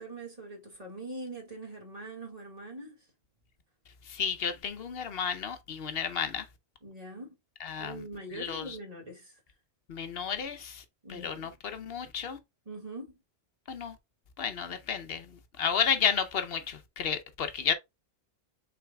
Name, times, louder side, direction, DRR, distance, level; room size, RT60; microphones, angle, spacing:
voice 1, 0.0-3.1 6.8-7.4 7.8-9.4 11.0-11.5 12.7-13.2, right 2 dB, 40° right, 1.9 m, -43 dB
voice 2, 4.1-6.5 7.6-8.0 8.3-8.8 9.9-10.8 11.1-12.4 13.7-14.0 14.4-17.7, left 7 dB, 70° left, 1.0 m, -32 dB
5.9 x 3.9 x 2.3 m
omnidirectional pair, 1.0 m